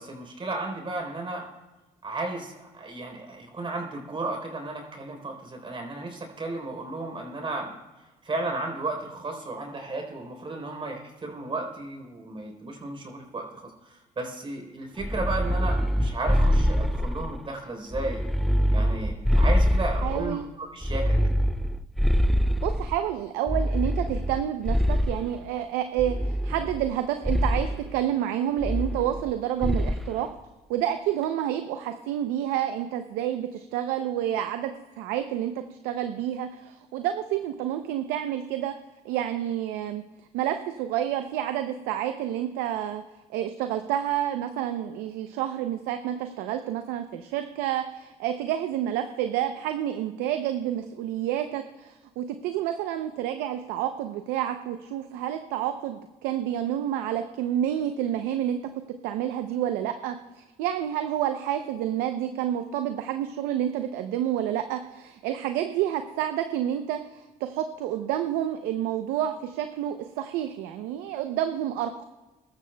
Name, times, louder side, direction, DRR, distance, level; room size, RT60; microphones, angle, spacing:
voice 1, 0.0-1.5 2.0-7.7 8.2-18.2 18.7-21.3, right 2 dB, 35° right, 2 dB, 3.8 m, -34 dB
sound 1, 15.0-17.4 17.9-20.4 20.8-23.0 23.5-25.3 26.0-26.9 27.2-27.7 28.6-29.3 29.6-30.1, equal, ahead, 0.5 m, -24 dB
voice 2, 20.0-20.4 22.6-30.3 30.7-35.5 35.8-38.7 39.0-40.0 40.3-43.0 43.3-58.6 59.0-72.0, right 11 dB, 85° right, 7 dB, 0.6 m, -29 dB
22.5 x 13.0 x 2.3 m, 1.1 s
supercardioid pair, 70°, 15 cm